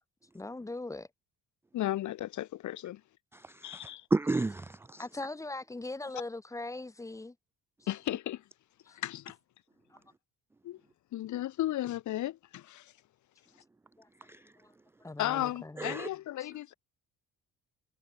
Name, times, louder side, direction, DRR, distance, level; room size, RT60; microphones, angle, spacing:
voice 1, 0.3-1.1 5.0-7.3 8.9-9.0 14.0-14.1 14.6-14.7 15.0-16.0 16.4-16.5, left 2 dB, 10° left, 2.6 m, -40 dB
voice 2, 1.7-3.0 3.6-4.1 7.9-8.4 8.9-9.4 10.6-10.8 11.1-12.9 15.2-16.7, left 14 dB, 60° left, 1.6 m, -35 dB
voice 3, 3.3-5.1 14.3-14.4 15.8-16.1, right 3 dB, 5° right, 0.4 m, -32 dB
cardioid pair, 170°, 34 cm